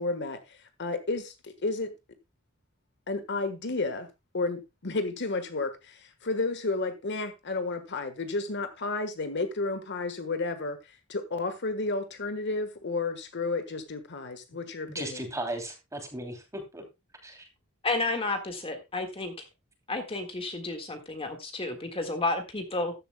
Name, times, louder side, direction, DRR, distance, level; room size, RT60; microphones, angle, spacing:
voice 1, 0.0-1.9 3.1-4.1 4.3-15.2, left 3 dB, 55° left, 1.3 m, -32 dB
voice 2, 14.9-16.8 17.2-17.4, right 1 dB, 15° right, 2.9 m, -36 dB
voice 3, 17.8-19.5 19.9-22.9, left 2 dB, 25° left, 1.7 m, -31 dB
14.0 x 11.0 x 2.2 m
head